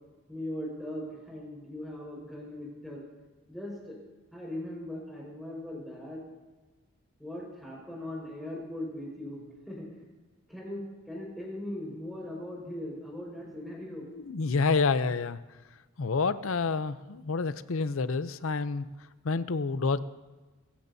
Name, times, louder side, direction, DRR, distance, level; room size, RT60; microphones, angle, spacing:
voice 1, 0.3-3.0 3.5-4.0 4.3-6.2 7.2-10.1 10.5-14.1, left 1 dB, ahead, -4 dB, 5.0 m, -39 dB
voice 2, 14.1-15.4 16.0-18.9 19.2-20.0, left 4 dB, 70° left, 14 dB, 0.6 m, -28 dB
24.0 x 14.5 x 2.7 m, 1.2 s
head